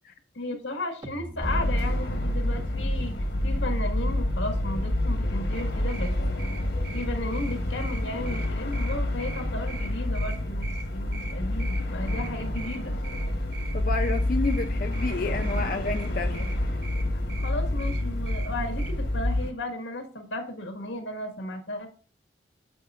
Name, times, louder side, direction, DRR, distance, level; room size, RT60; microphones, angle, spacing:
voice 1, 0.3-6.5 6.9-12.9 17.4-21.9, left 1 dB, 85° left, 5 dB, 1.6 m, -35 dB
sound 1, 1.0-7.3, right 1 dB, 25° right, 0.5 m, -39 dB
sound 2, 1.4-19.5, left 1 dB, 65° left, 1.2 m, -28 dB
sound 3, 5.5-18.9, right 3 dB, 60° right, 1.2 m, -44 dB
voice 2, 13.7-16.5, left 3 dB, 45° left, 5 dB, 0.5 m, -30 dB
9.8 x 7.5 x 2.5 m, 0.40 s
head